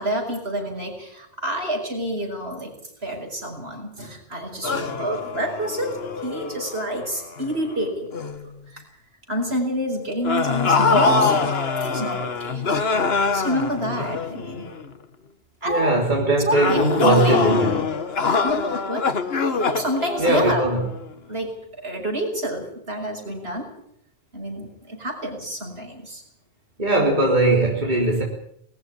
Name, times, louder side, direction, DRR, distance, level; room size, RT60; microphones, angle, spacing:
voice 1, 0.0-2.7 3.0-8.1 8.4-8.8 9.3-11.3 11.7-12.6 13.3-14.7 15.6-17.4 18.4-19.1 19.7-20.7 21.3-21.5 21.8-23.7 24.3-26.2, equal, 80° right, 6.3 m, -28 dB
sound 1, 4.6-7.7 8.1-8.4 10.2-14.8 16.5-21.1, left 4 dB, 80° left, 1.7 m, -24 dB
voice 2, 15.7-17.7 20.2-20.9 26.8-28.2, right 2 dB, 45° right, 3.7 m, -20 dB
21.0 x 14.0 x 10.0 m
omnidirectional pair, 1.0 m